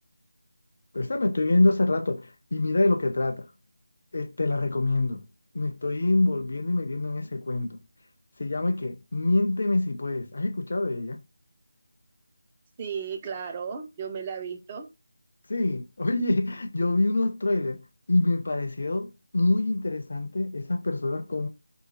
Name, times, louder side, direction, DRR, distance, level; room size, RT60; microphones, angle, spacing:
voice 1, 0.9-3.5 4.1-5.2 5.5-7.8 8.4-11.2 15.5-17.8 18.1-19.1 19.3-21.5, left 2 dB, 55° left, 0.4 m, -25 dB
voice 2, 12.8-14.9, right 6 dB, 20° right, 0.3 m, -34 dB
2.7 x 2.3 x 2.8 m
figure-of-eight pair, 165°, 0 cm